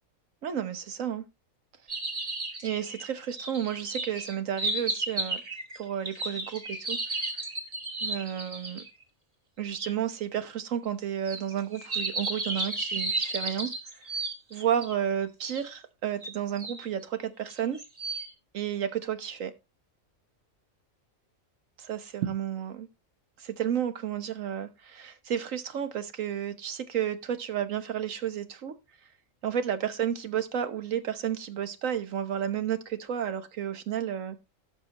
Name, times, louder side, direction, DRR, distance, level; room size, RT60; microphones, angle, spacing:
voice 1, 0.4-1.2 2.6-5.4 5.8-7.2 8.0-8.8 9.6-13.7 14.5-17.8 18.5-19.5 21.9-22.9 23.4-28.7 29.4-34.4, right 9 dB, 75° right, 1.4 m, -32 dB
sound 1, 1.9-8.9 9.8-9.9 11.3-15.0 15.5-15.6 16.2-16.8 17.5-18.3, right 2 dB, 30° right, 1.5 m, -33 dB
17.0 x 6.2 x 2.9 m
omnidirectional pair, 1.4 m